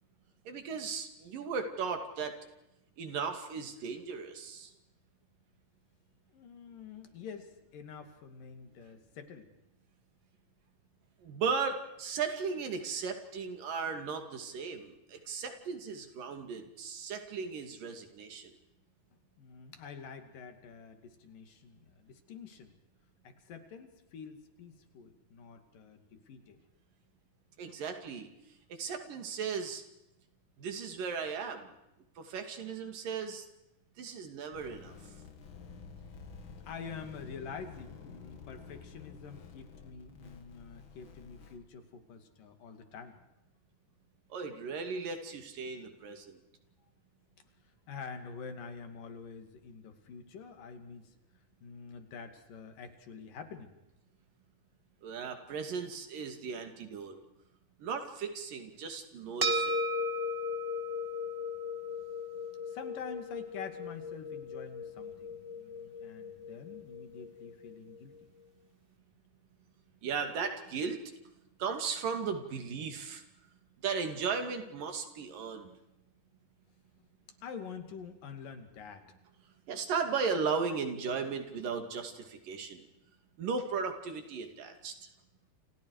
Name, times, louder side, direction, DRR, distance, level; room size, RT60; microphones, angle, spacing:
voice 1, 0.5-2.4 3.0-4.7 11.2-18.5 27.6-28.3 28.7-29.8 30.6-31.7 32.2-33.5 34.0-35.0 44.3-46.4 55.0-57.2 57.8-59.8 70.0-71.0 71.6-73.2 73.8-75.8 79.7-82.9 83.4-84.9, right 5 dB, 85° right, 6 dB, 4.2 m, -36 dB
voice 2, 6.3-9.5 19.4-22.8 23.2-26.6 35.6-35.7 36.6-43.2 47.7-51.1 51.6-53.7 62.7-68.1 77.4-79.0, left 6 dB, 85° left, 7 dB, 4.1 m, -47 dB
sound 1, 34.5-41.6, left 5 dB, 40° left, 2.3 m, -50 dB
sound 2, 59.4-68.0, left 2 dB, 25° right, 1.4 m, -36 dB
29.0 x 28.5 x 4.9 m, 0.92 s
omnidirectional pair, 3.8 m